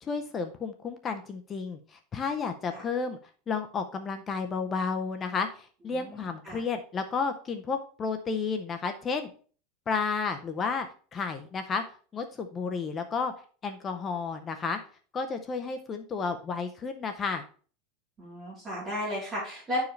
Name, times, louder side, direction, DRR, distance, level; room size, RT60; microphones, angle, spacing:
voice 1, 0.0-3.2 3.5-9.3 9.9-10.9 11.1-11.8 12.1-13.3 13.6-14.8 15.1-17.4, left 5 dB, 20° left, 7 dB, 0.5 m, -32 dB
voice 2, 5.9-6.6 18.2-19.8, left 1 dB, 20° right, -6 dB, 3.4 m, -34 dB
10.5 x 4.7 x 3.2 m, 0.41 s
supercardioid pair, 165°, 0 cm